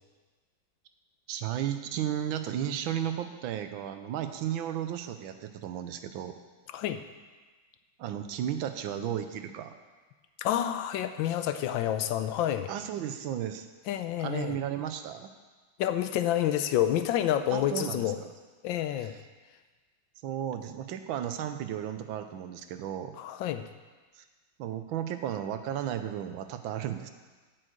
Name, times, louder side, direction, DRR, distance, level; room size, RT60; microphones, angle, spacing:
voice 1, 1.3-6.3 8.0-9.7 12.7-13.7 14.2-15.3 17.5-18.3 20.2-23.2 24.1-24.2 24.6-27.1, right 10 dB, 80° right, 8 dB, 1.5 m, -34 dB
voice 2, 6.7-7.0 10.4-12.7 13.9-14.6 15.8-18.2 18.6-19.2 23.2-23.7, left 11 dB, 80° left, 10 dB, 1.3 m, -28 dB
8.8 x 6.5 x 7.9 m, 1.3 s
omnidirectional pair, 2.2 m